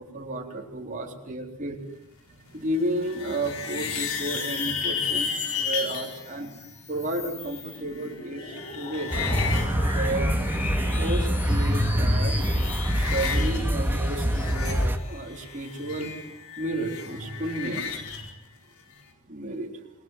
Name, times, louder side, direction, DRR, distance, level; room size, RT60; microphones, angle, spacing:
voice 1, 0.0-1.9 2.2-9.2 9.8-12.3 12.9-18.3 19.3-19.8, right 1 dB, 35° right, 0 dB, 4.1 m, -33 dB
sound 1, 2.7-6.2 7.5-10.9 11.2-12.0 12.3-13.6 13.9-18.3, left 6 dB, 75° left, 5.0 m, -34 dB
sound 2, 5.4-16.3, left 2 dB, 35° left, 6.9 m, -40 dB
sound 3, 9.1-15.0, equal, 10° right, 2.3 m, -25 dB
29.5 x 20.5 x 7.7 m, 0.84 s
head